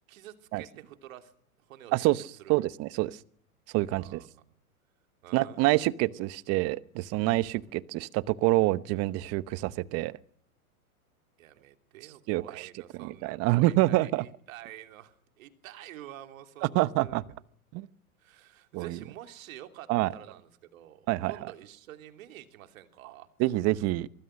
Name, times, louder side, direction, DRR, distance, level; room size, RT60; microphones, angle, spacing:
voice 1, 0.1-1.3 1.7-2.1 2.4-2.5 3.9-4.5 5.2-5.9 11.4-17.2 18.2-23.3, right 13 dB, 60° right, 3.2 m, -48 dB
voice 2, 1.9-2.2 2.5-3.2 3.7-4.2 5.3-10.1 12.3-12.7 13.0-14.2 16.7-17.2 17.7-17.9 18.7-19.0 19.9-20.1 21.1-21.3 23.4-24.1, right 18 dB, 35° right, 0.9 m, -26 dB
24.5 x 19.5 x 6.5 m
hypercardioid pair, 125°, 45 cm